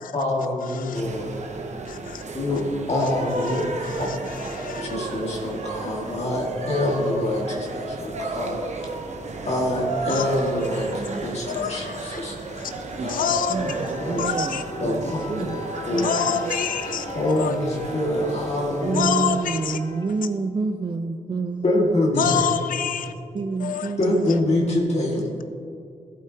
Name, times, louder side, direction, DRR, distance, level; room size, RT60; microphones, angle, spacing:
voice 1, 0.1-1.3 2.3-3.7 4.0-8.9 9.4-13.3 13.5-14.2 14.8-15.6 15.9-16.2 17.1-19.1 21.6-22.5 24.0-25.3, left 1 dB, 50° left, -2 dB, 1.9 m, -26 dB
sound 1, 0.9-19.7, right 3 dB, 55° right, 1.0 m, -33 dB
voice 2, 3.5-4.2 4.5-5.0 10.1-10.3 11.5-12.2 13.1-13.6 14.2-14.6 16.0-17.1 17.4-17.5 18.9-19.8 22.2-23.1 23.6-23.9, left 8 dB, 80° left, 11 dB, 0.6 m, -27 dB
sound 2, 10.8-20.2, left 4 dB, 30° left, 1.1 m, -41 dB
voice 3, 13.5-17.0 18.8-21.9 23.3-24.3 25.0-25.1, right 4 dB, 35° right, 5 dB, 0.5 m, -29 dB
14.5 x 8.4 x 2.8 m, 2.5 s
cardioid pair, 60°, 14 cm